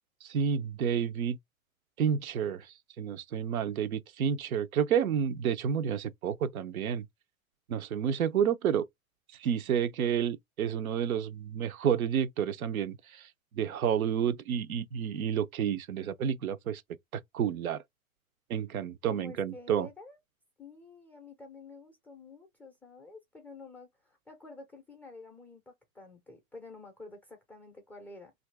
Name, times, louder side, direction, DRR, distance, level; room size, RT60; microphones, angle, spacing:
voice 1, 0.2-1.4 2.0-7.1 7.7-8.9 9.4-16.8 17.1-17.8 18.5-19.9, right 8 dB, 80° right, 0.6 m, -30 dB
voice 2, 19.1-20.2 20.6-28.3, left 3 dB, 5° left, 0.4 m, -49 dB
2.7 x 2.5 x 3.2 m
hypercardioid pair, 115°, 42 cm